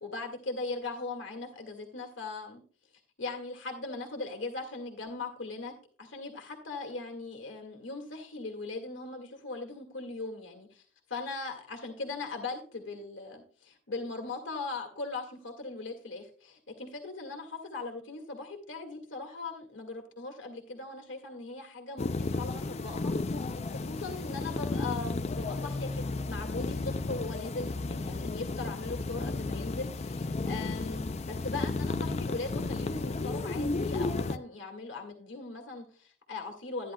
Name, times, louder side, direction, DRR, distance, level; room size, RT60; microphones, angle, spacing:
voice 1, 0.0-2.6 3.2-5.7 6.0-36.9, left 3 dB, 75° left, 3 dB, 1.9 m, -39 dB
sound 1, 22.0-34.4, left 3 dB, 35° left, 0.4 m, -33 dB
12.5 x 10.5 x 2.2 m, 0.42 s
head